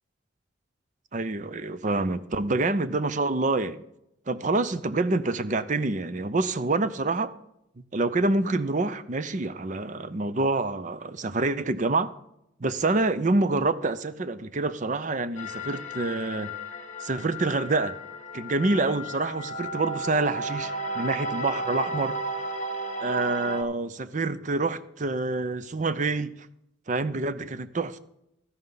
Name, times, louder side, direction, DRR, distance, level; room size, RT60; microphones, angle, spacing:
voice 1, 1.1-3.8 4.3-7.3 7.9-12.1 12.6-16.5 17.0-17.9 18.3-22.1 23.0-26.3 26.9-28.0, right 3 dB, 40° right, 0.6 m, -27 dB
sound 1, 15.4-23.6, right 1 dB, 40° left, 1.1 m, -34 dB
13.0 x 11.0 x 3.9 m
head